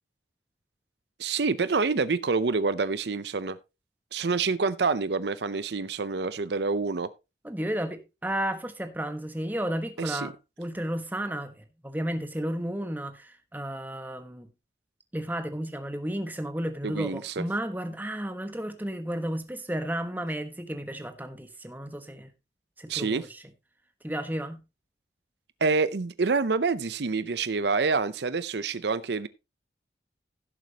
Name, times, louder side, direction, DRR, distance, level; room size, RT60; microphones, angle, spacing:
voice 1, 1.2-3.6 4.1-7.1 10.0-10.3 16.8-17.4 22.9-23.3 25.6-29.3, right 4 dB, 70° right, 0.6 m, -27 dB
voice 2, 7.4-11.5 11.8-14.5 15.1-22.3 22.8-23.4 24.0-24.6, right 1 dB, 10° right, 1.2 m, -33 dB
16.5 x 7.5 x 2.9 m
head